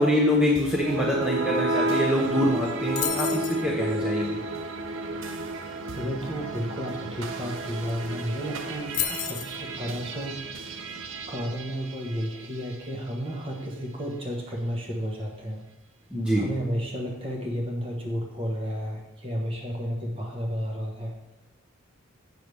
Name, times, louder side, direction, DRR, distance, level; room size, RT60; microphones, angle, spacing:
voice 1, 0.0-4.4 16.1-16.4, equal, 5° right, -5 dB, 0.8 m, -25 dB
sound 1, 0.5-12.9, right 2 dB, 65° right, 0.5 m, -32 dB
sound 2, 3.0-3.6 7.6-7.7 7.9-8.2 8.9-9.6, left 11 dB, 35° left, 0.4 m, -30 dB
voice 2, 5.9-10.4 11.3-15.6 16.4-21.1, equal, 25° right, 0 dB, 1.2 m, -32 dB
8.0 x 5.7 x 3.4 m, 0.93 s
head